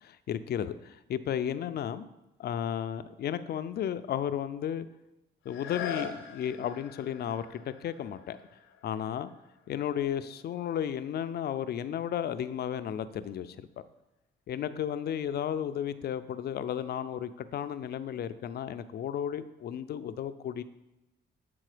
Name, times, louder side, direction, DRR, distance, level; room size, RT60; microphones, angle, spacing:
voice 1, 0.0-2.1 2.4-4.9 5.5-8.4 8.8-9.3 9.7-13.7 14.5-20.6, left 9 dB, 55° left, 12 dB, 0.4 m, -33 dB
sound 1, 5.4-11.1 11.7-11.8, left 7 dB, 90° left, 0.8 m, -43 dB
7.7 x 3.7 x 4.9 m, 0.96 s
cardioid pair, 90°, 20 cm